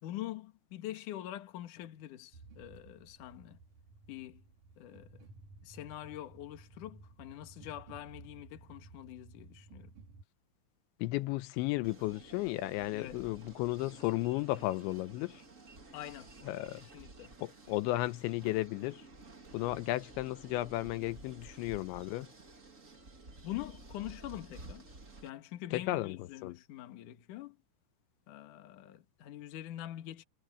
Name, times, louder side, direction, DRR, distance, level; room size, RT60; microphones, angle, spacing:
voice 1, 0.0-3.6 4.1-4.4 4.8-5.3 5.6-9.9 12.9-13.2 15.9-16.4 16.8-17.4 23.4-24.9 25.2-27.6 28.3-30.2, left 13 dB, 60° left, 2.5 m, -44 dB
sound 1, 2.3-10.2, right 3 dB, 50° right, 3.4 m, -55 dB
voice 2, 11.0-15.4 16.5-16.8 17.4-19.0 19.5-22.3 25.9-26.2 26.4-26.6, left 18 dB, 85° left, 3.0 m, -34 dB
sound 2, 11.8-25.3, right 2 dB, 30° right, 1.4 m, -53 dB
omnidirectional pair, 5.3 m